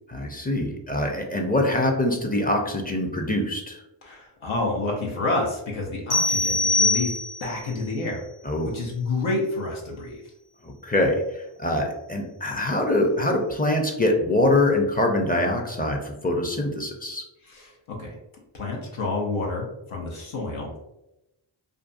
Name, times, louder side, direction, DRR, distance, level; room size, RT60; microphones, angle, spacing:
voice 1, 0.1-3.8 8.4-8.7 10.6-17.2, left 1 dB, 20° left, 2 dB, 0.5 m, -24 dB
voice 2, 4.0-7.1 7.4-8.2 8.6-10.2 17.4-18.2 18.5-20.8, left 2 dB, 75° left, -2 dB, 0.8 m, -29 dB
sound 1, 6.1-7.6, left 2 dB, 50° left, 1.3 m, -23 dB
2.5 x 2.3 x 2.5 m, 0.90 s
cardioid pair, 40°, 48 cm